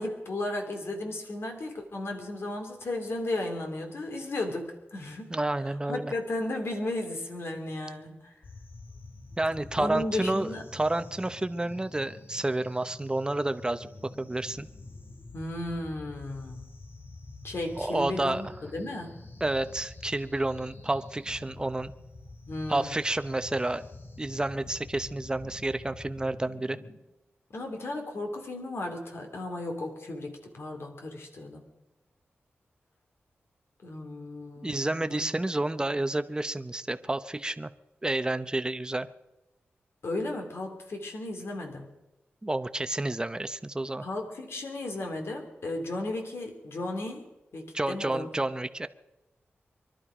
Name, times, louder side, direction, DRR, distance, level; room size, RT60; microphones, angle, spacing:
voice 1, 0.0-5.3 5.9-8.3 9.8-10.6 15.3-16.7 17.4-19.2 22.5-22.9 27.5-31.7 33.8-35.3 35.6-35.8 40.0-41.9 44.0-47.3 47.5-48.3, left 2 dB, 70° left, 3 dB, 2.7 m, -35 dB
voice 2, 5.3-6.1 9.4-13.9 14.2-14.7 17.8-18.4 19.4-21.9 22.7-23.9 24.2-26.8 34.6-37.7 38.0-39.1 42.4-44.0 47.7-48.9, right 2 dB, 20° right, 11 dB, 0.8 m, -30 dB
sound 1, 8.4-27.0, left 2 dB, 55° left, 1.9 m, -47 dB
24.0 x 12.0 x 5.0 m, 0.99 s
wide cardioid pair, 75°, 4 cm